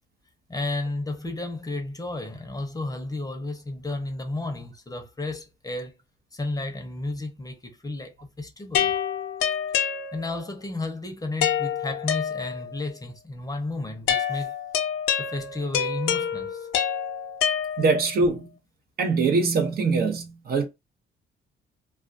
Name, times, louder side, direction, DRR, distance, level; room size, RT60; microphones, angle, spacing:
voice 1, 0.5-5.9 6.3-8.9 10.1-14.5 15.2-16.7, left 2 dB, 20° left, 0.7 m, -32 dB
sound 1, 8.7-10.5 11.4-12.8 14.1-18.2, left 8 dB, 85° left, 0.5 m, -27 dB
voice 2, 17.8-18.5 19.0-20.6, right 4 dB, 50° right, 0.7 m, -23 dB
2.3 x 2.2 x 2.5 m
cardioid pair, 90°, 20 cm